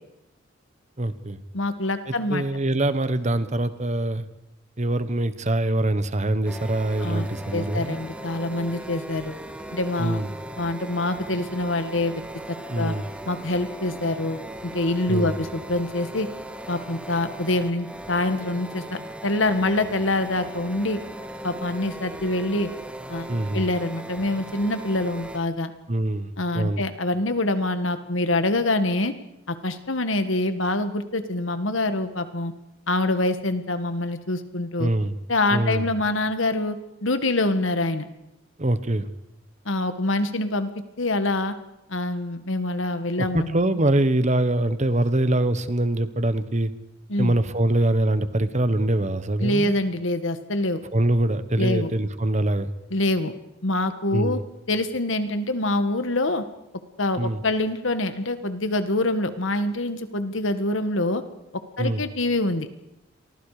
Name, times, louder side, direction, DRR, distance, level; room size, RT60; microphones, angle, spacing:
voice 1, 1.0-1.4 2.1-4.2 4.8-8.0 10.0-10.3 12.7-13.1 15.1-15.3 23.3-23.6 25.9-26.8 34.8-35.2 35.5-35.9 38.6-39.1 43.2-46.7 47.2-49.7 50.9-52.7 54.1-54.4 57.2-57.4 61.8-62.0, right 1 dB, 35° right, 12 dB, 1.3 m, -24 dB
voice 2, 1.5-2.4 7.0-9.4 9.7-10.2 10.6-12.2 12.7-12.9 13.3-16.3 16.7-21.0 21.4-22.7 23.1-23.3 23.5-25.7 26.4-29.1 29.5-32.5 32.9-34.9 35.3-36.8 37.0-38.1 39.7-40.7 41.0-41.5 41.9-43.6 47.1-47.4 49.4-50.8 51.6-51.9 52.9-53.3 53.6-54.4 54.7-56.4 57.0-61.2 61.8-62.7, left 2 dB, 70° left, 10 dB, 1.7 m, -25 dB
sound 1, 6.4-25.4, right 1 dB, 5° right, 1.8 m, -38 dB
29.5 x 23.5 x 5.1 m, 0.88 s
head